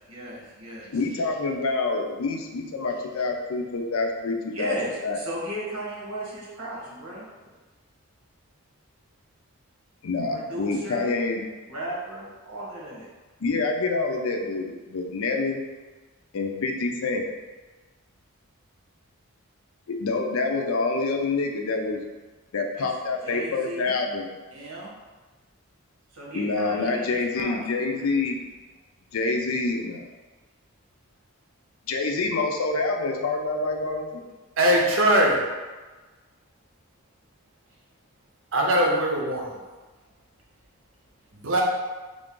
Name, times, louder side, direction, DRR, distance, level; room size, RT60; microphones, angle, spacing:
voice 1, 0.1-1.2 4.5-7.3 10.3-11.2 11.6-13.1 22.8-22.9 23.2-24.0 24.5-24.9 26.1-28.1, right 1 dB, 85° right, -5 dB, 1.2 m, -36 dB
voice 2, 0.9-4.8 5.0-5.2 10.0-11.4 13.4-15.6 16.3-17.2 19.9-22.0 22.5-24.3 26.3-28.4 29.1-30.1 31.9-34.2, left 3 dB, 75° left, 3 dB, 0.5 m, -27 dB
voice 3, 34.6-35.4 38.5-39.6 41.4-41.6, right 1 dB, 60° right, -1 dB, 0.7 m, -21 dB
3.6 x 2.5 x 3.7 m, 1.3 s
head